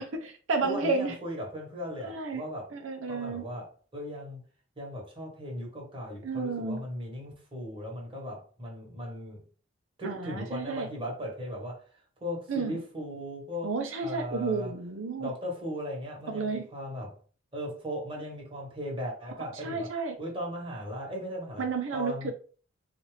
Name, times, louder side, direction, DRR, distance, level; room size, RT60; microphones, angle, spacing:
voice 1, 0.0-1.1 2.0-2.4 2.7-3.4 6.2-6.8 10.0-10.9 12.5-12.8 13.6-15.3 16.3-16.6 19.6-20.1 21.6-22.3, right 4 dB, 85° right, 0.6 m, -31 dB
voice 2, 0.6-2.8 3.1-4.4 4.8-9.4 10.0-11.9 12.2-13.8 14.0-14.8 15.2-17.2 17.5-19.9 20.2-21.7 21.9-22.3, equal, 25° right, 1.3 m, -37 dB
4.0 x 2.5 x 3.2 m
head